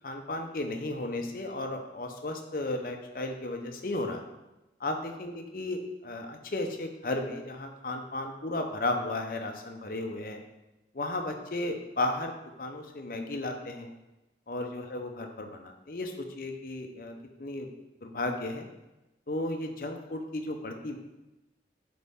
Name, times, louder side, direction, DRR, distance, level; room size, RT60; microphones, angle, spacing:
voice 1, 0.0-4.2 4.8-10.4 10.9-13.9 14.5-17.7 18.0-18.7 19.3-21.0, left 2 dB, 50° left, 4 dB, 0.7 m, -34 dB
8.2 x 4.3 x 3.6 m, 1.0 s
head